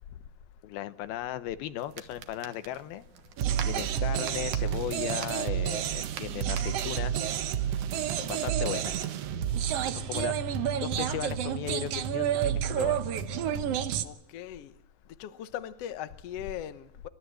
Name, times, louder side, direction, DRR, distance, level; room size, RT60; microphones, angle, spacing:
voice 1, 0.6-3.0 3.6-7.3 8.2-9.0 9.9-10.3 10.8-13.0, left 12 dB, 90° left, 13 dB, 2.8 m, -36 dB
sound 1, 1.8-7.2, right 8 dB, 65° right, 2.6 m, -46 dB
sound 2, 3.4-14.0, right 9 dB, 80° right, 1.3 m, -30 dB
voice 2, 14.0-14.7 15.2-17.1, left 10 dB, 70° left, 11 dB, 1.5 m, -39 dB
29.5 x 13.0 x 7.9 m, 0.81 s
omnidirectional pair, 4.2 m